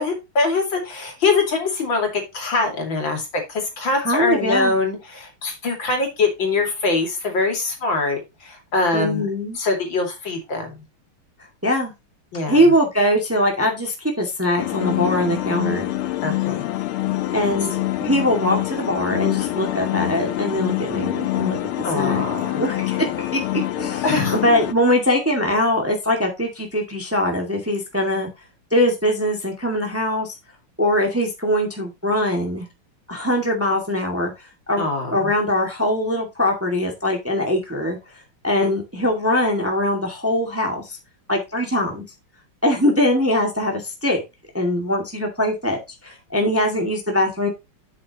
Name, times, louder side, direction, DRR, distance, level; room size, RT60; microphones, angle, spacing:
voice 1, 0.0-9.3 9.5-10.8 12.3-12.7 16.2-16.7 21.8-22.6 24.0-24.4 34.8-35.3, left 3 dB, 60° left, 3 dB, 3.2 m, -23 dB
voice 2, 4.0-4.7 8.9-9.6 11.6-11.9 12.5-15.9 17.3-21.6 21.9-22.3 22.5-24.0 24.3-28.3 28.7-30.4 30.8-32.7 33.1-34.3 34.7-34.8 35.1-38.0 38.4-41.0 41.3-42.0 42.6-44.2 44.5-47.5, left 1 dB, 5° right, 1 dB, 1.9 m, -22 dB
sound 1, 14.6-24.7, left 14 dB, 80° left, 1.6 m, -25 dB
8.7 x 7.5 x 3.0 m, 0.24 s
omnidirectional pair, 2.4 m